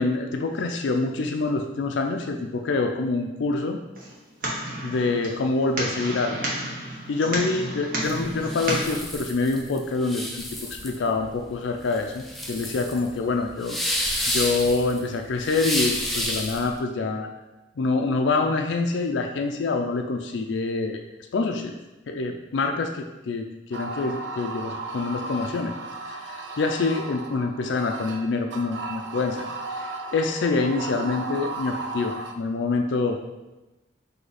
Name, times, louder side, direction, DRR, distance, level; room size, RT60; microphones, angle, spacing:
voice 1, 0.0-3.8 4.8-6.4 7.1-10.4 10.7-13.8 14.3-17.3 17.8-21.0 21.3-21.7 22.1-25.8 26.0-33.2, left 3 dB, 75° left, 4 dB, 0.4 m, -26 dB
sound 1, 4.0-9.0, right 1 dB, 45° right, 1.0 m, -31 dB
sound 2, 8.0-16.7, left 1 dB, ahead, 0.4 m, -30 dB
sound 3, 23.7-32.3, right 2 dB, 70° right, 0.4 m, -35 dB
4.8 x 2.8 x 4.0 m, 1.0 s
head